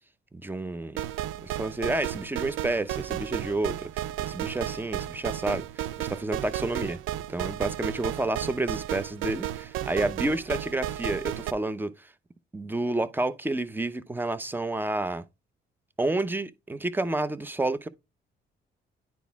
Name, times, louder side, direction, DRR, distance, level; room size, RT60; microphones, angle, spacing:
voice 1, 0.4-1.0 1.4-7.0 7.3-12.1 12.5-15.3 16.0-17.9, right 2 dB, 10° right, 0.7 m, -30 dB
sound 1, 1.0-11.5, right 12 dB, 85° right, 0.4 m, -33 dB
10.5 x 4.1 x 3.5 m
cardioid pair, 90°, 20 cm